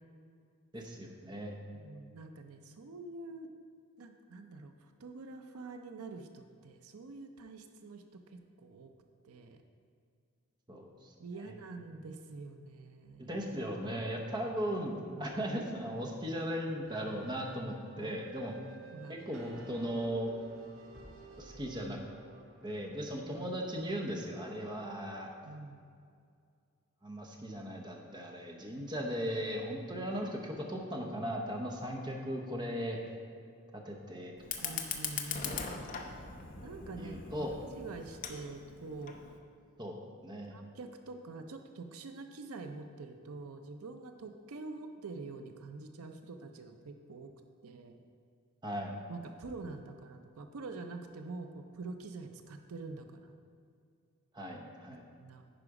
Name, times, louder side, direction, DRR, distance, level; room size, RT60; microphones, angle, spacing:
voice 1, 0.7-1.6 10.7-11.5 13.2-18.5 19.1-20.3 21.4-22.0 22.6-25.3 27.0-33.0 33.8-34.3 34.6-34.8 37.0-37.5 39.8-40.6 48.6-49.0 54.3-55.0, equal, 20° right, 1 dB, 0.8 m, -38 dB
voice 2, 1.7-3.5 4.0-8.9 9.2-9.6 11.2-13.3 15.2-15.3 18.0-18.1 18.8-19.2 25.4-25.9 34.6-35.8 36.6-37.1 37.8-39.2 40.5-47.3 47.6-48.0 49.1-53.4 55.2-55.4, right 3 dB, 80° right, 6 dB, 0.6 m, -46 dB
sound 1, 16.8-24.9, right 2 dB, 65° right, 0.9 m, -54 dB
Fire, 34.4-39.4, left 6 dB, 35° left, 0.6 m, -41 dB
10.0 x 4.9 x 4.8 m, 2.2 s
head